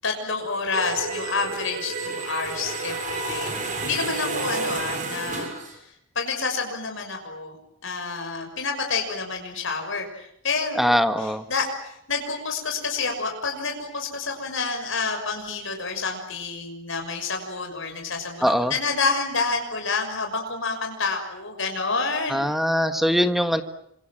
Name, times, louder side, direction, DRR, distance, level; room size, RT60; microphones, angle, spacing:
voice 1, 0.0-3.5 3.8-7.6 7.8-22.5, left 4 dB, 60° left, 4 dB, 6.4 m, -29 dB
sound 1, 0.7-5.7, right 3 dB, 35° right, 6.6 m, -30 dB
voice 2, 10.8-11.4 18.4-18.7 22.3-23.6, equal, ahead, 8 dB, 1.6 m, -21 dB
29.5 x 26.5 x 7.5 m, 0.74 s
head